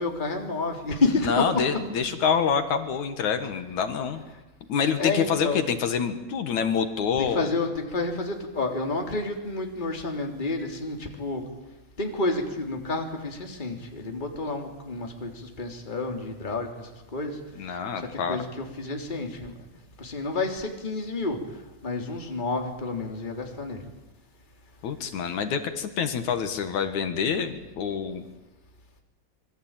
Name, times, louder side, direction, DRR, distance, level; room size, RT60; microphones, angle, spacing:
voice 1, 0.0-1.6 5.0-5.6 7.3-11.5 12.0-17.4 17.7-19.6 20.0-21.4 21.8-23.8, left 3 dB, 15° left, 2 dB, 3.3 m, -30 dB
voice 2, 1.2-4.2 4.7-7.5 17.6-18.4 24.8-28.2, left 6 dB, 60° left, 9 dB, 2.8 m, -26 dB
26.5 x 23.0 x 9.1 m, 1.0 s
omnidirectional pair, 3.9 m